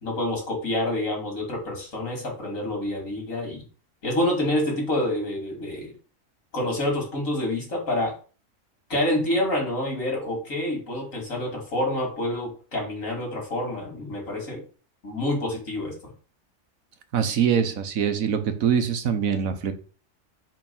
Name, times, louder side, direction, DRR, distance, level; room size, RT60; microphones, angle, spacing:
voice 1, 0.0-3.6 4.0-5.9 6.5-8.1 8.9-14.6 15.0-15.9, left 1 dB, 75° left, 0 dB, 3.2 m, -27 dB
voice 2, 17.1-19.7, right 7 dB, 85° right, 8 dB, 1.4 m, -23 dB
5.3 x 5.2 x 5.5 m, 0.37 s
omnidirectional pair, 1.4 m